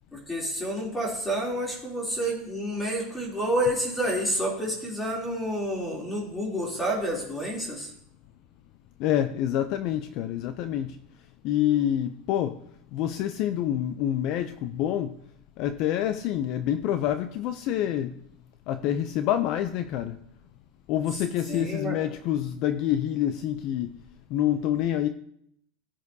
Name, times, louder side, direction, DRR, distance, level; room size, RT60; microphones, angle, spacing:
voice 1, 0.1-7.9 21.5-22.0, equal, 10° left, 3.1 m, -29 dB
voice 2, 9.0-11.0 11.4-12.6 12.9-15.2 15.6-18.2 18.7-20.2 20.9-24.0 24.3-25.1, left 11 dB, 45° left, 0.4 m, -27 dB
15.0 x 7.4 x 2.7 m
supercardioid pair, 150°, 0 cm